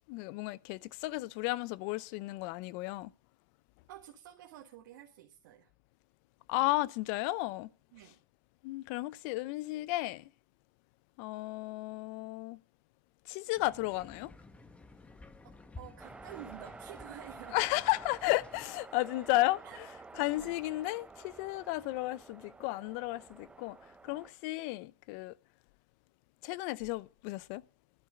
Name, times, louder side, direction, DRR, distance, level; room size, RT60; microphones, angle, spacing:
voice 1, 0.1-3.1 6.5-7.7 8.6-10.3 11.2-12.6 13.3-14.3 17.5-19.6 20.2-23.8 24.0-25.3 26.4-27.6, left 19 dB, 55° left, 0.6 m, -33 dB
voice 2, 3.9-5.7 7.9-8.2 15.4-17.6 19.6-19.8 20.3-20.6, right 12 dB, 70° right, 1.7 m, -50 dB
sound 1, 13.6-18.7, left 2 dB, 10° left, 1.1 m, -53 dB
sound 2, 16.0-24.3, right 3 dB, 10° right, 0.5 m, -51 dB
11.5 x 10.0 x 7.6 m
supercardioid pair, 120°, 11 cm